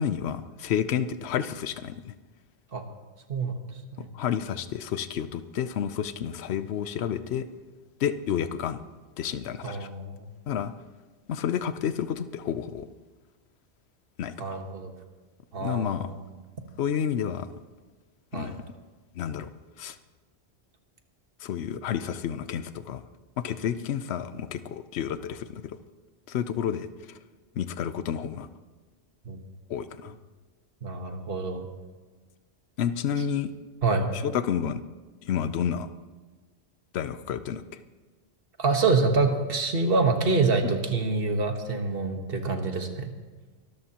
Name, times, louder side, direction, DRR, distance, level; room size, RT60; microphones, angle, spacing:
voice 1, 0.0-2.1 4.1-7.5 8.0-8.8 9.2-9.9 10.5-10.7 11.3-12.9 14.2-14.6 15.6-16.1 16.8-17.5 18.3-18.6 19.2-19.5 19.8-20.0 21.4-23.0 23.4-25.8 26.3-26.9 27.6-28.5 29.7-30.2 32.8-33.5 34.1-34.8 35.2-35.9 36.9-37.6 40.6-40.7, left 8 dB, 80° left, 12 dB, 0.9 m, -30 dB
voice 2, 3.3-3.7 4.0-4.1 9.6-10.3 14.4-14.9 15.5-16.2 18.3-18.5 29.2-29.4 30.8-31.6 33.8-34.1 38.6-43.1, right 3 dB, 60° right, 5 dB, 1.5 m, -26 dB
24.5 x 13.5 x 2.9 m, 1.3 s
omnidirectional pair, 1.1 m